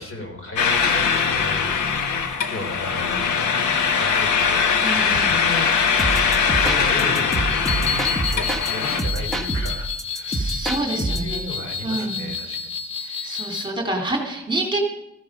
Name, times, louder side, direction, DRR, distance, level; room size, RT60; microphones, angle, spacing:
voice 1, 0.0-3.3 3.8-5.8 6.2-10.6 10.9-12.7 13.0-13.5, left 1 dB, 45° left, 3 dB, 4.1 m, -35 dB
sound 1, 0.6-9.0, left 6 dB, 75° left, 1.5 m, -21 dB
voice 2, 4.8-5.3 10.3-11.4 11.8-12.3 13.0-14.8, right 2 dB, 15° right, 2 dB, 2.5 m, -27 dB
sound 2, 6.0-8.7 9.0-11.3, right 2 dB, ahead, 1.4 m, -26 dB
sound 3, 7.5-13.7, left 6 dB, 20° left, 1.5 m, -30 dB
14.0 x 14.0 x 5.2 m, 0.93 s
cardioid pair, 90°, 30 cm